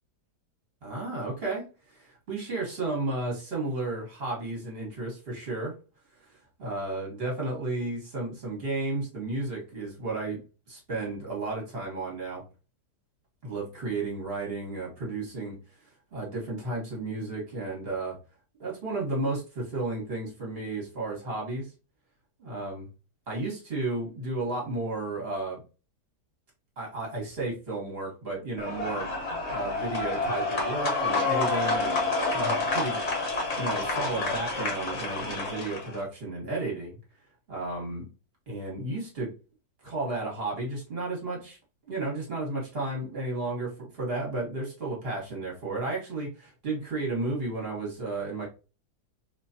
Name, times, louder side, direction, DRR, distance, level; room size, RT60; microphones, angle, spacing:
voice 1, 0.8-5.7 6.6-10.4 10.7-12.4 13.4-15.6 16.1-18.2 18.6-21.7 22.4-22.9 23.3-25.6 26.8-29.1 29.5-32.0 32.3-33.0 33.6-37.0 37.5-38.1 38.5-39.3 39.8-41.6 41.9-48.5, right 2 dB, 35° right, -3 dB, 1.6 m, -33 dB
sound 1, 28.6-36.0, left 3 dB, 50° left, 1.3 m, -29 dB
3.1 x 3.1 x 2.7 m, 0.32 s
omnidirectional pair, 1.8 m